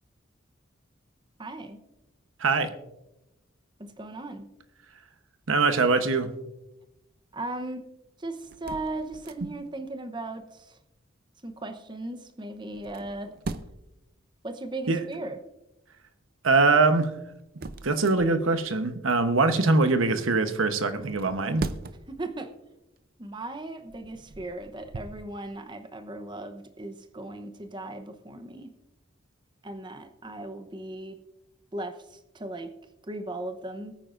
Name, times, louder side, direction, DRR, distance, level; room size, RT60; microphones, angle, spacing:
voice 1, 1.4-1.8 3.8-4.4 7.3-7.8 8.2-10.8 11.4-13.3 14.4-15.4 22.1-22.5 23.2-28.7 29.6-31.2 31.7-32.7 33.1-34.0, right 2 dB, 25° right, 8 dB, 0.8 m, -37 dB
voice 2, 2.4-2.7 5.5-6.3 9.4-9.5 14.9-15.0 16.4-17.1 17.8-21.6, right 3 dB, 85° right, 9 dB, 1.0 m, -23 dB
sound 1, 8.4-9.7 12.7-14.0 16.9-18.7 21.0-22.2 22.8-23.0 23.7-25.2, right 3 dB, 45° right, 0.5 m, -40 dB
21.0 x 9.1 x 2.5 m, 0.94 s
head